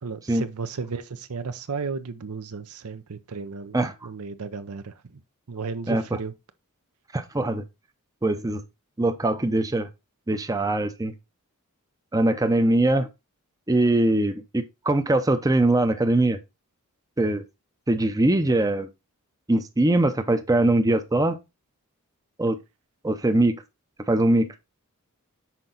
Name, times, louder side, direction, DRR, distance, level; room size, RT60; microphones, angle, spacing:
voice 1, 0.0-5.2 5.5-6.3, right 4 dB, 80° right, 0.7 m, -34 dB
voice 2, 5.9-6.2 7.1-7.6 8.2-8.6 9.0-9.9 10.3-11.1 12.1-13.1 13.7-16.4 17.2-17.4 17.9-18.9 19.5-21.4 22.4-22.6 23.0-23.6 24.1-24.5, right 2 dB, 15° right, 0.6 m, -22 dB
5.9 x 4.7 x 3.8 m
head